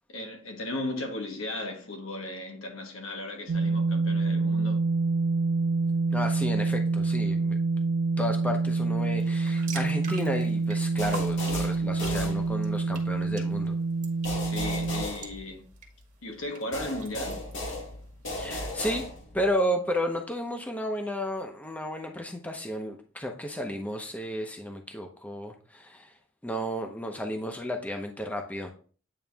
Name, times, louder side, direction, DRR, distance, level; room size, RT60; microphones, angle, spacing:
voice 1, 0.1-4.8 14.4-15.6 16.2-17.4, left 1 dB, 85° left, 1.4 m, -36 dB
sound 1, 3.5-15.1, right 3 dB, 70° right, 0.4 m, -27 dB
voice 2, 6.1-7.6 8.2-13.8 18.4-19.1 19.3-26.1 26.4-28.7, equal, 10° left, 0.7 m, -32 dB
sound 2, 9.2-18.3, right 5 dB, 40° right, 1.3 m, -47 dB
sound 3, 11.0-12.9 14.2-16.0 16.7-19.5, left 1 dB, 65° left, 1.8 m, -36 dB
8.7 x 3.1 x 3.4 m
head